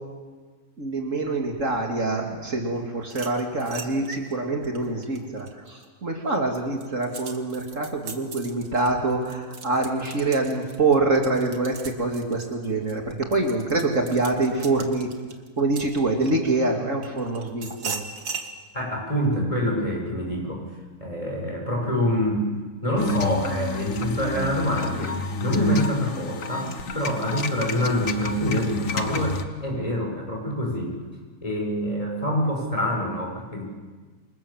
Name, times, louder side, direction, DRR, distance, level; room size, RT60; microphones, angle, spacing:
voice 1, 0.8-15.1 15.6-18.0, right 2 dB, 55° right, 2 dB, 3.0 m, -25 dB
sound 1, 3.0-5.9 6.3-16.5 17.0-18.5, right 5 dB, 90° right, 2.5 m, -39 dB
voice 2, 18.7-20.6 21.0-22.4 22.8-31.0 31.4-33.6, equal, 20° left, -1 dB, 7.5 m, -26 dB
sound 2, 23.0-29.4, left 4 dB, 60° left, 1.9 m, -31 dB
28.0 x 27.0 x 7.5 m, 1.4 s
omnidirectional pair, 1.6 m